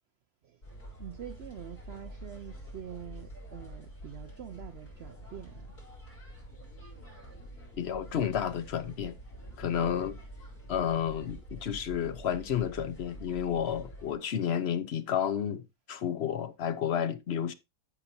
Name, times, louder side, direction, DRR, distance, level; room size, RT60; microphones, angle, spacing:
sound 1, 0.6-14.2, equal, 75° left, 4.6 m, -47 dB
voice 1, 1.0-5.7, right 9 dB, 70° right, 0.6 m, -45 dB
voice 2, 7.8-9.2 9.6-10.2 10.7-15.6 15.9-17.5, left 9 dB, 55° left, 0.8 m, -31 dB
13.0 x 5.8 x 2.6 m
omnidirectional pair, 1.6 m